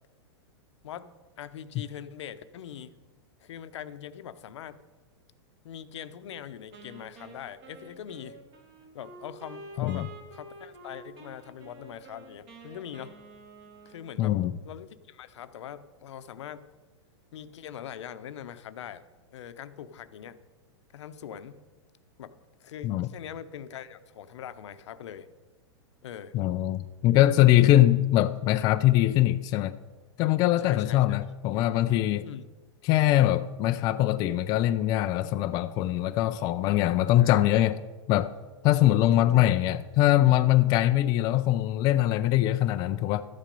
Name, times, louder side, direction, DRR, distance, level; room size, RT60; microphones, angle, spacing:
voice 1, 1.4-2.9 3.4-4.8 5.6-8.4 8.9-13.1 13.9-14.3 14.6-16.7 17.3-19.0 19.3-20.4 20.9-21.6 22.2-22.3 22.6-25.3 26.0-26.4 30.6-31.2 32.3-32.4 37.2-37.5 38.8-39.4, left 9 dB, 75° left, 12 dB, 0.7 m, -42 dB
Wind instrument woodwind instrument, 6.7-14.6, right 2 dB, 35° right, 2.2 m, -49 dB
voice 2, 14.2-14.6 22.8-23.1 26.3-29.8 30.2-32.3 32.8-37.8 38.1-38.3 38.6-43.2, left 14 dB, 25° left, 9 dB, 0.3 m, -22 dB
12.5 x 7.4 x 5.3 m, 1.2 s
hypercardioid pair, 150°, 15 cm